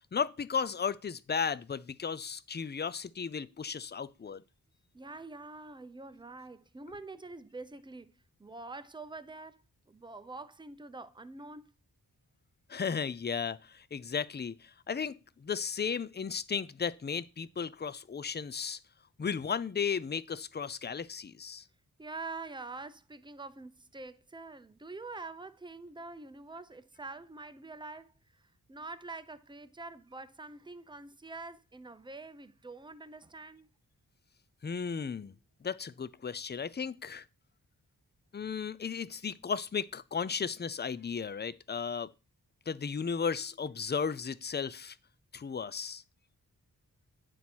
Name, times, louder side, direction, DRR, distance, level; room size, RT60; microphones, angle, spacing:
voice 1, 0.1-4.4 12.7-18.8 19.2-21.6 34.6-35.4 35.6-37.2 38.3-42.1 42.7-45.0 45.3-46.0, left 6 dB, 30° left, 0.4 m, -35 dB
voice 2, 4.9-11.7 22.0-33.7, right 3 dB, 10° right, 0.6 m, -46 dB
9.2 x 4.2 x 6.1 m
wide cardioid pair, 70°, 37 cm